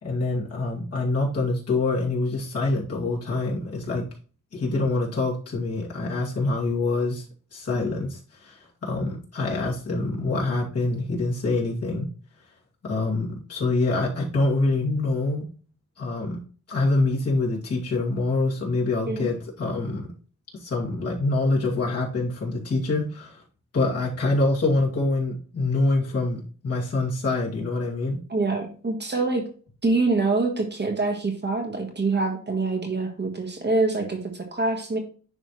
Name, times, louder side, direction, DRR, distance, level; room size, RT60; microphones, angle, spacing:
voice 1, 0.0-4.0 4.5-7.3 7.5-12.1 12.8-15.4 16.0-16.4 16.7-20.1 20.6-23.4 23.7-28.2, left 2 dB, 50° left, -4 dB, 2.5 m, -25 dB
voice 2, 28.3-29.4 29.8-35.0, right 3 dB, 35° right, 3 dB, 1.5 m, -25 dB
10.0 x 3.4 x 3.1 m, 0.40 s
cardioid pair, 85°, 32 cm